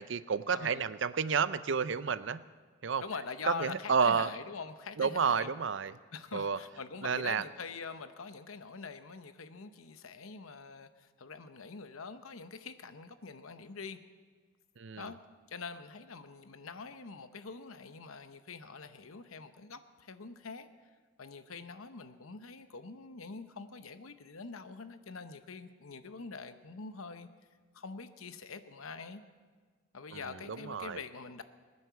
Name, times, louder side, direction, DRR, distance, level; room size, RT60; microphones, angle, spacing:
voice 1, 0.0-2.4 2.8-3.0 3.5-4.3 5.0-6.0 6.3-6.6 7.0-7.4 14.8-15.1 30.1-30.2 30.5-31.0, right 6 dB, 65° right, 15 dB, 0.5 m, -30 dB
voice 2, 0.5-0.9 3.0-5.5 6.1-14.0 15.0-15.2 15.5-20.7 21.2-27.3 27.7-29.2 29.9-31.4, left 4 dB, 90° left, 10 dB, 0.9 m, -44 dB
21.0 x 9.7 x 7.0 m, 1.5 s
head